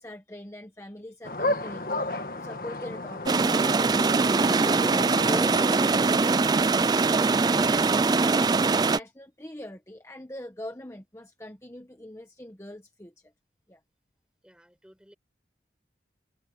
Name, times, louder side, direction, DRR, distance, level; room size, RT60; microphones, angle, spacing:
voice 1, 0.0-13.1 13.7-13.8, left 1 dB, 15° left, 1.0 m, -42 dB
sound 1, 1.2-7.0, left 2 dB, 50° left, 1.7 m, -34 dB
sound 2, 3.3-9.0, right 4 dB, 20° right, 0.3 m, -22 dB
voice 2, 14.4-15.1, equal, 5° right, 6.8 m, -56 dB
head